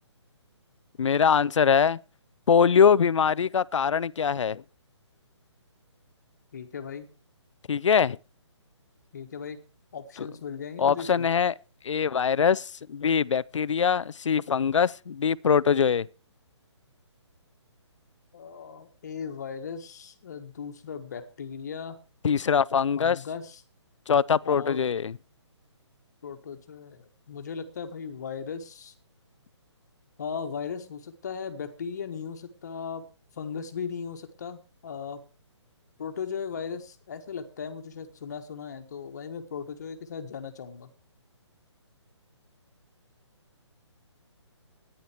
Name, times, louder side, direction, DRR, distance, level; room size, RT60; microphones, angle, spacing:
voice 1, 1.0-2.0 2.5-4.6 7.7-8.2 10.2-10.3 10.8-11.6 11.8-16.1 22.2-23.2 24.1-25.2, left 7 dB, 85° left, 0.5 m, -23 dB
voice 2, 6.5-7.1 9.1-9.6 9.9-11.3 18.3-22.0 23.0-23.6 24.4-24.8 26.2-28.9 30.2-33.0 33.3-35.2 36.0-40.9, left 6 dB, 35° left, 1.5 m, -37 dB
13.5 x 10.0 x 4.5 m
hypercardioid pair, 175°, 15 cm